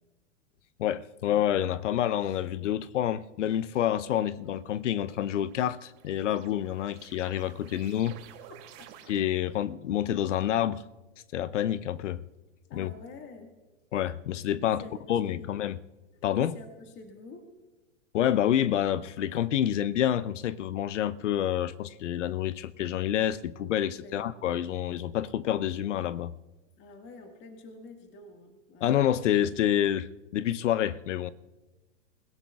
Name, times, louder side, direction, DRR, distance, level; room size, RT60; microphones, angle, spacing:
voice 1, 0.8-8.2 9.1-10.8 11.3-12.2 12.7-12.9 13.9-14.8 15.1-15.8 16.2-16.6 18.1-26.3 28.8-31.3, left 11 dB, 80° left, 0.7 m, -28 dB
sound 1, 4.6-9.5, right 11 dB, 45° right, 2.6 m, -53 dB
voice 2, 8.8-9.2 12.7-13.5 14.6-15.5 16.4-17.5 23.9-24.3 26.8-28.9, left 3 dB, 30° left, 1.7 m, -48 dB
29.0 x 17.0 x 2.4 m
hypercardioid pair, 115°, 36 cm